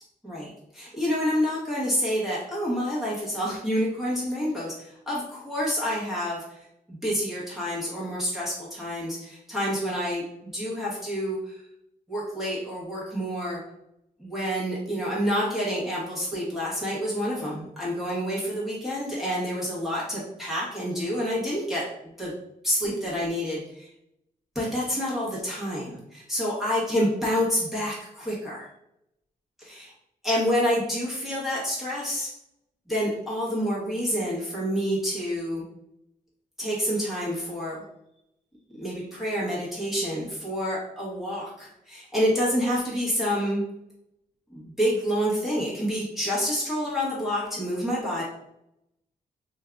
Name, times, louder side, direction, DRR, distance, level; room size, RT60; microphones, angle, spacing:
voice 1, 0.2-6.6 6.9-11.5 12.1-13.6 14.2-22.3 22.6-23.9 24.5-28.7 29.6-29.8 30.2-32.3 32.9-35.6 36.6-37.8 38.8-43.6 44.5-48.2, equal, ahead, -8 dB, 1.1 m, -28 dB
2.6 x 2.4 x 3.3 m, 0.80 s
cardioid pair, 110°, 15 cm